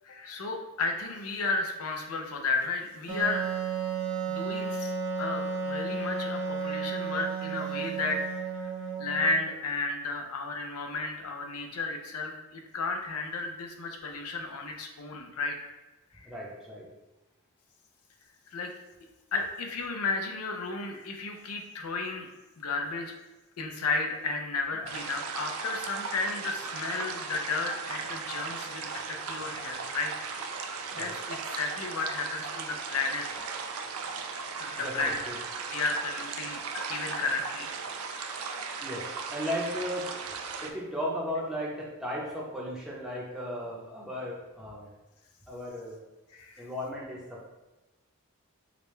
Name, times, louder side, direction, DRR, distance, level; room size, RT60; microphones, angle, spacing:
voice 1, 0.0-3.5 4.3-4.9 5.2-8.2 8.6-8.7 9.0-15.6 16.2-16.3 18.5-18.7 19.3-22.3 22.6-23.1 23.6-33.3 34.6-35.2 35.7-37.7 38.1-38.5 46.3-46.7, left 3 dB, 80° left, 3 dB, 0.6 m, -33 dB
Wind instrument woodwind instrument, 3.1-9.5, right 5 dB, 55° right, 0.9 m, -33 dB
voice 2, 16.2-16.9 24.7-24.9 30.9-31.1 34.8-35.4 38.8-40.1 40.6-44.9 45.5-46.0 46.6-47.5, equal, 5° right, -5 dB, 0.7 m, -36 dB
sound 1, 24.9-40.7, right 5 dB, 75° right, 0.4 m, -37 dB
4.9 x 2.2 x 3.2 m, 1.1 s
head